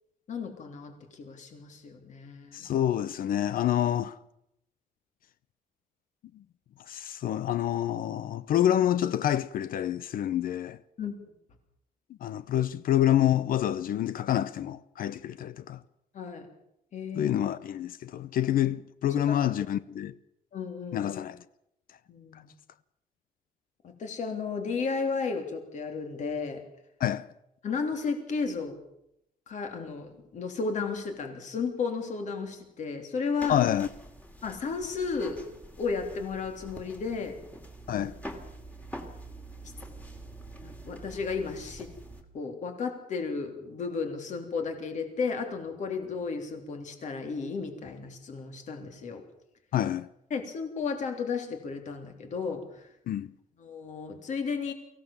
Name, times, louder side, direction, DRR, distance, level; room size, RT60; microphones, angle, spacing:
voice 1, 0.3-2.7 11.0-11.1 16.1-16.5 16.9-17.3 19.1-19.5 20.5-21.1 22.1-22.5 23.8-26.6 27.6-28.8 29.5-33.6 34.4-35.4 35.8-37.4 37.9-38.0 39.6-39.7 40.6-41.9 42.3-49.2 50.3-52.9 53.6-54.7, left 5 dB, 50° left, 3.4 m, -33 dB
voice 2, 2.5-4.2 6.9-10.8 12.2-15.8 17.1-20.2 20.9-21.4 27.0-27.3 33.5-33.9 37.9-38.2 49.7-50.1 53.1-53.3, left 11 dB, 70° left, 0.7 m, -27 dB
sound 1, 33.4-42.2, right 1 dB, 10° left, 2.6 m, -45 dB
23.5 x 16.5 x 7.3 m
cardioid pair, 165°, 15 cm